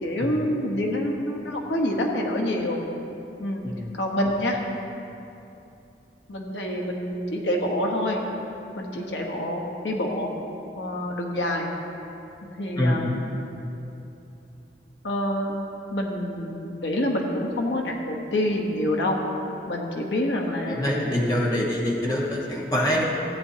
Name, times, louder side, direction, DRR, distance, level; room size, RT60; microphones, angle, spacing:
voice 1, 0.0-2.8 3.4-3.6 4.0-4.6 6.3-8.2 8.7-10.3 10.8-11.7 12.4-13.2 15.0-15.5 15.9-19.2 19.7-21.0, left 1 dB, 85° left, 0 dB, 1.2 m, -27 dB
voice 2, 20.7-23.0, left 1 dB, 20° left, -4 dB, 1.4 m, -24 dB
15.5 x 9.1 x 2.8 m, 2.9 s
head